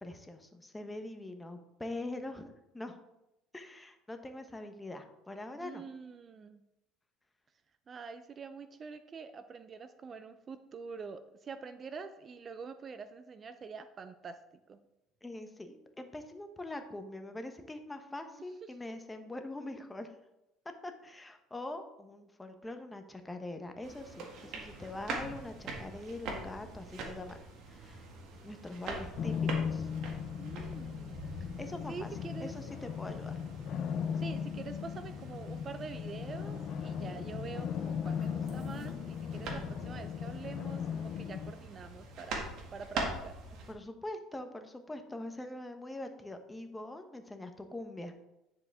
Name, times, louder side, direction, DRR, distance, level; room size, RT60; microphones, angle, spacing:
voice 1, 0.0-3.0 3.5-5.8 15.2-20.1 20.8-27.4 27.7-28.1 28.4-29.9 31.6-32.1 32.4-33.4 43.7-48.1, left 2 dB, 10° left, 7 dB, 0.9 m, -43 dB
voice 2, 5.5-6.6 7.9-14.4 14.7-14.8 30.4-31.1 31.4-31.5 31.9-32.5 34.2-43.3, right 5 dB, 35° right, 10 dB, 0.5 m, -46 dB
sound 1, 23.8-43.7, right 3 dB, 60° right, 1.7 m, -44 dB
sound 2, 29.1-41.5, left 7 dB, 55° left, 0.6 m, -37 dB
9.6 x 4.8 x 3.6 m, 0.89 s
supercardioid pair, 90°, 0 cm